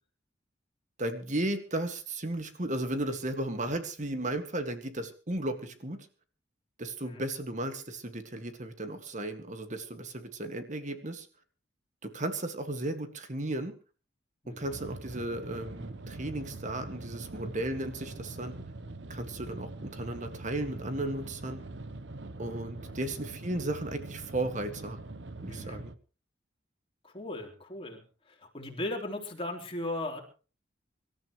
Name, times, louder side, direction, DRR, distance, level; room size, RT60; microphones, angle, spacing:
voice 1, 1.0-6.1 6.8-11.3 12.0-13.8 14.5-18.5 19.1-21.6 22.4-25.0 25.4-25.9, right 1 dB, 40° right, 8 dB, 2.0 m, -35 dB
voice 2, 14.4-14.8 22.8-22.9 25.5-25.9 27.0-30.2, left 1 dB, 30° left, 1 dB, 3.7 m, -38 dB
sound 1, 14.6-25.9, right 2 dB, 70° right, 1.0 m, -43 dB
25.0 x 13.5 x 3.2 m, 0.36 s
head